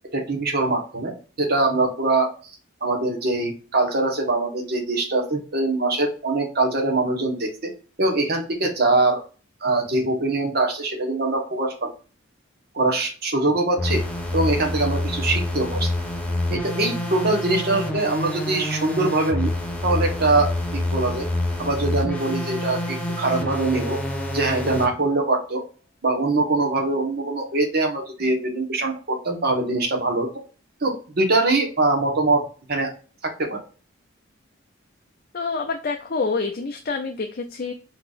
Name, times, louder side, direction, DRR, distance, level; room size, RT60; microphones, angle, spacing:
voice 1, 0.1-2.3 2.8-7.7 8.0-9.2 9.6-11.9 12.7-14.0 14.3-15.9 16.5-19.5 19.8-21.3 21.6-24.0 24.3-25.6 26.0-30.3 30.8-32.9 33.4-33.6, right 2 dB, 50° right, 2 dB, 1.2 m, -23 dB
sound 1, 13.8-24.9, left 1 dB, 5° left, 0.8 m, -27 dB
voice 2, 35.3-37.7, left 4 dB, 45° left, 3 dB, 0.5 m, -27 dB
4.5 x 4.0 x 2.5 m, 0.36 s
head